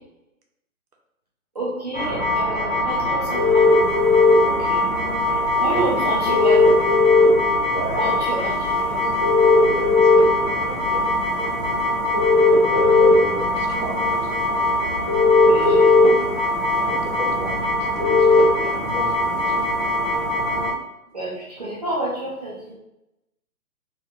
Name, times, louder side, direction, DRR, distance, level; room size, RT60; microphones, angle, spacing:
voice 1, 1.5-3.9 4.5-4.9 5.3-7.0 8.0-9.1 15.4-16.3 18.6-18.8 21.1-22.7, right 1 dB, 30° right, -8 dB, 0.5 m, -29 dB
sound 1, 1.9-20.7, left 1 dB, 10° left, 1.0 m, -23 dB
sound 2, 3.3-4.3 6.3-7.3 9.2-10.2 12.1-13.1 15.1-16.1 18.0-18.4, left 4 dB, 35° left, 1.0 m, -15 dB
voice 2, 5.7-6.1 7.6-8.5 9.5-11.1 12.7-14.3 16.8-19.7, right 3 dB, 85° right, 1 dB, 1.0 m, -33 dB
3.5 x 2.3 x 2.8 m, 0.88 s
hypercardioid pair, 150°, 45 cm